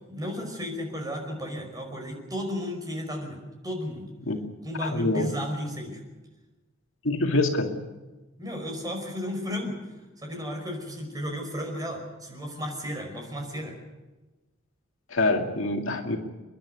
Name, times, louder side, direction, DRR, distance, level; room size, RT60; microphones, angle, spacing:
voice 1, 0.1-4.1 4.6-6.0 8.4-9.8 10.2-13.7, equal, 20° right, 2 dB, 5.2 m, -33 dB
voice 2, 4.8-5.3 7.0-7.7 15.1-16.2, left 2 dB, 70° left, 3 dB, 2.3 m, -25 dB
30.0 x 11.0 x 9.5 m, 1.2 s
head